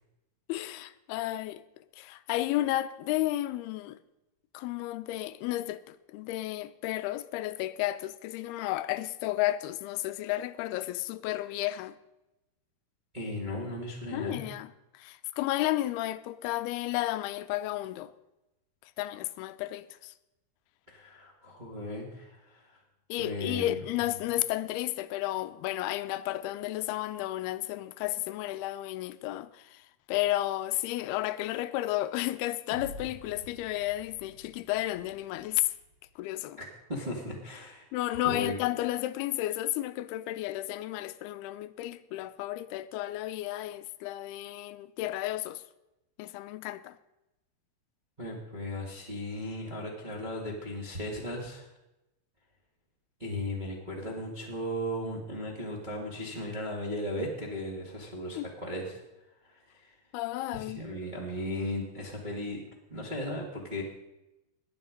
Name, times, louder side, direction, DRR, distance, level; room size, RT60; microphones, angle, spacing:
voice 1, 0.5-1.7 2.0-4.0 4.5-12.0 14.1-18.1 19.0-20.1 23.1-29.8 30.1-35.7 36.2-36.6 37.9-45.6 46.2-47.0 58.4-58.5 60.1-60.8, left 15 dB, 90° left, 2.6 m, -32 dB
voice 2, 13.1-14.5 20.9-22.8 23.2-23.8 36.6-38.5 48.2-51.7 53.2-59.0 59.5-59.9 60.5-62.6 62.9-63.8, left 1 dB, 20° right, 1.3 m, -36 dB
sound 1, 32.7-36.0, equal, 50° right, 1.5 m, -49 dB
21.0 x 7.9 x 5.2 m
omnidirectional pair, 4.4 m